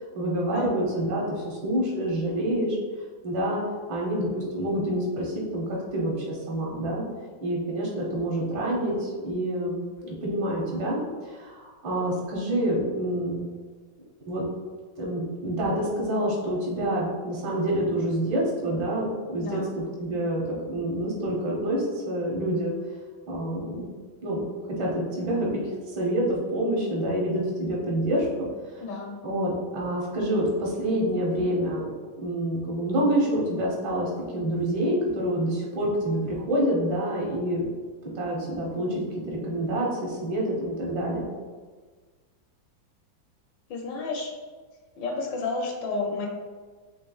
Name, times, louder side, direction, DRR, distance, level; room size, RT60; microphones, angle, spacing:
voice 1, 0.1-2.8 3.2-3.6 3.9-5.6 5.9-7.0 7.4-9.8 10.2-11.0 11.3-13.4 14.3-14.4 15.0-19.6 20.0-22.7 23.3-23.9 24.2-24.4 24.7-28.3 28.7-28.8 29.2-31.9 32.2-37.7 38.0-41.3, right 1 dB, 75° right, -3 dB, 1.7 m, -27 dB
voice 2, 19.4-19.8 28.8-29.2 43.7-44.3 45.0-46.3, left 3 dB, 75° left, 0 dB, 1.2 m, -31 dB
5.3 x 3.2 x 2.3 m, 1.5 s
omnidirectional pair, 2.1 m